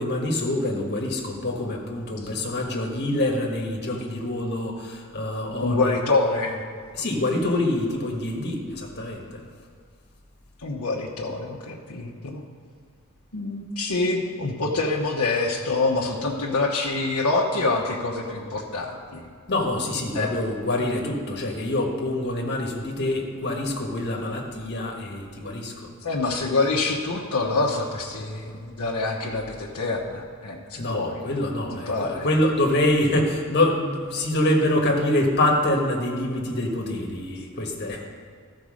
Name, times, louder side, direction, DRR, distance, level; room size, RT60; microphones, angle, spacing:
voice 1, 0.0-6.0 6.9-9.4 19.5-25.9 30.7-38.1, left 1 dB, 50° left, 0 dB, 1.5 m, -25 dB
voice 2, 5.6-6.6 10.6-12.4 13.3-19.3 20.1-20.3 26.0-31.2 31.9-32.3, left 3 dB, 90° left, -3 dB, 1.0 m, -26 dB
13.5 x 4.6 x 6.3 m, 2.1 s
head